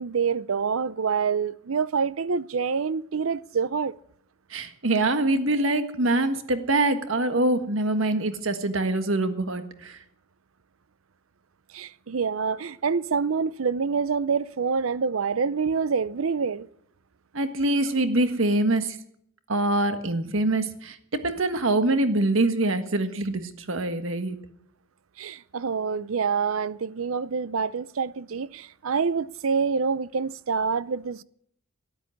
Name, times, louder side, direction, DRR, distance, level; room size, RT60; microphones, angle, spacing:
voice 1, 0.0-4.0 11.7-16.7 25.2-31.2, right 5 dB, 90° right, 0.6 m, -26 dB
voice 2, 4.5-10.0 17.3-19.0 19.5-24.4, right 2 dB, 70° right, 1.6 m, -24 dB
13.0 x 11.5 x 9.4 m
head